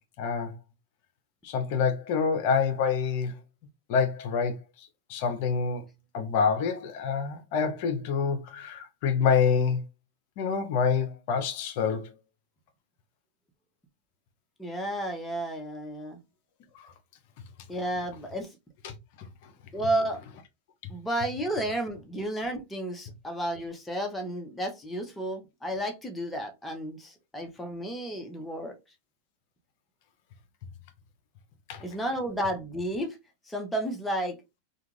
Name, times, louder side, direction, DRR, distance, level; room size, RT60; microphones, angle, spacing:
voice 1, 0.2-0.5 1.4-3.4 3.9-4.6 5.1-5.8 6.1-9.8 10.4-12.1 16.8-16.9 18.8-18.9 31.7-31.8, left 6 dB, 60° left, 0.6 m, -26 dB
voice 2, 14.6-16.2 17.7-18.5 19.7-20.2 20.9-28.8 31.8-33.2 33.5-34.4, right 1 dB, 10° left, 0.7 m, -32 dB
2.4 x 2.3 x 3.1 m
hypercardioid pair, 110°, 0 cm